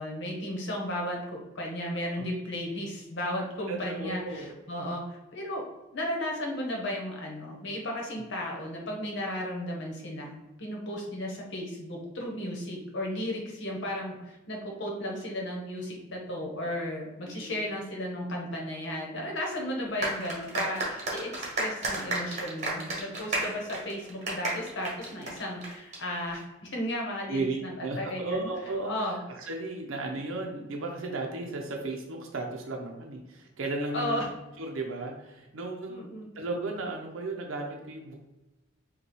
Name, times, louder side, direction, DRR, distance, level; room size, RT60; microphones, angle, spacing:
voice 1, 0.0-5.6 5.9-26.4 26.7-28.5 28.9-29.2 33.9-34.3 35.9-36.3, left 1 dB, 60° left, -1 dB, 1.0 m, -34 dB
voice 2, 3.7-4.5 17.2-17.7 27.3-34.3 34.6-36.1 36.4-38.2, right 2 dB, 85° right, 1 dB, 0.6 m, -35 dB
sound 1, 20.0-26.0, right 2 dB, 35° right, 1.2 m, -32 dB
5.3 x 2.3 x 3.0 m, 1.0 s
head